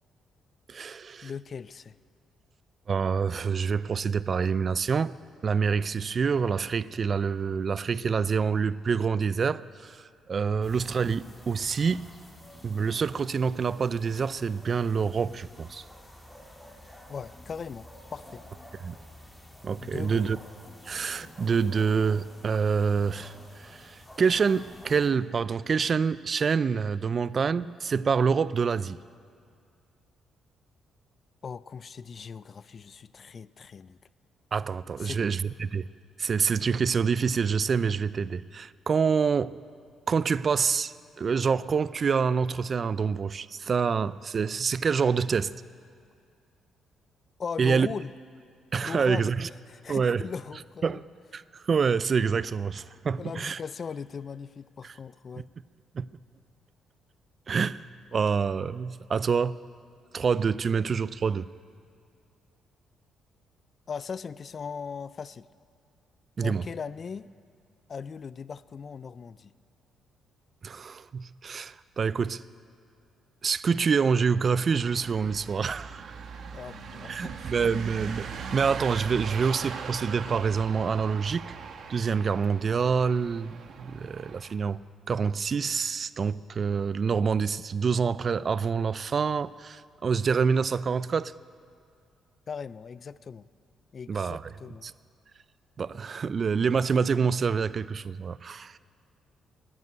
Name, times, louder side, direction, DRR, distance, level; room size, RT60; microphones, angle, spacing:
voice 1, 0.7-1.3 2.9-5.2 5.4-12.0 12.6-15.8 18.8-19.0 19.6-20.4 20.8-29.0 34.5-35.9 36.2-39.5 40.1-45.5 47.6-47.9 48.7-49.5 49.9-50.2 50.8-51.0 51.3-53.6 54.8-54.9 55.9-56.1 57.5-59.6 60.1-61.5 66.4-66.6 70.6-72.4 73.4-76.1 77.0-78.3 78.5-81.5 81.9-84.8 85.1-91.3 94.1-94.5 94.8-94.9 95.8-98.8, right 5 dB, 45° right, 18 dB, 0.3 m, -27 dB
voice 2, 1.2-1.9 17.1-18.4 19.8-20.3 31.4-34.0 35.0-35.2 47.4-48.1 48.8-49.3 49.7-51.0 53.1-55.5 63.9-65.5 66.4-67.3 67.9-69.5 76.5-77.5 92.5-93.5 93.9-94.9, left 6 dB, 45° left, 18 dB, 0.4 m, -39 dB
sound 1, 10.6-25.1, left 1 dB, 10° left, 2.5 m, -50 dB
sound 2, 74.5-84.6, right 6 dB, 60° right, 1.1 m, -40 dB
12.0 x 11.0 x 9.6 m, 2.3 s
cardioid pair, 90°, 0 cm